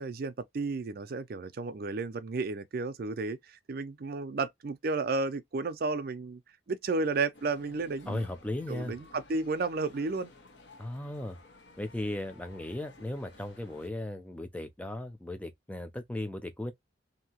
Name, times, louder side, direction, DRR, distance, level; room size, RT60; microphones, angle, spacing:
voice 1, 0.0-6.4 6.7-8.2 8.7-10.3, right 3 dB, 50° right, 0.4 m, -32 dB
sound 1, 7.3-13.9, left 2 dB, 60° left, 0.8 m, -55 dB
voice 2, 8.1-9.0 10.8-11.4 11.8-16.7, left 1 dB, 5° left, 0.4 m, -36 dB
2.8 x 2.6 x 2.8 m
head